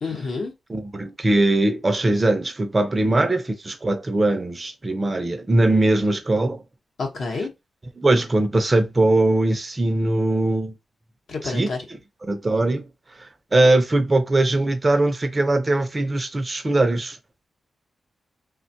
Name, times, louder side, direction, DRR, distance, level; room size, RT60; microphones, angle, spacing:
voice 1, 0.0-0.5 7.0-7.5 11.3-11.8, left 4 dB, 55° left, 0.8 m, -28 dB
voice 2, 0.7-6.6 8.0-10.7 11.4-12.8 13.5-17.2, right 2 dB, 20° right, 0.5 m, -21 dB
3.3 x 2.2 x 2.6 m
wide cardioid pair, 155°, 0 cm